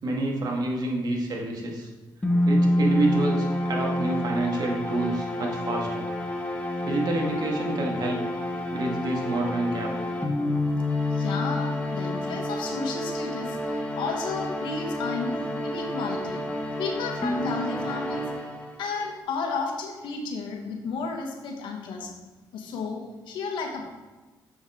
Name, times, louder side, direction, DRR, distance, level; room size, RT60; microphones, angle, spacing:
voice 1, 0.0-1.9 2.5-6.1 6.8-8.2 8.7-10.0, right 2 dB, 55° right, 0 dB, 1.7 m, -28 dB
sound 1, 2.2-19.0, left 1 dB, 15° left, 1.4 m, -28 dB
voice 2, 11.1-16.4 16.8-18.3 18.8-22.1 22.5-23.9, left 4 dB, 85° left, 2 dB, 1.3 m, -33 dB
7.1 x 6.4 x 3.6 m, 1.2 s
cardioid pair, 75°, 8 cm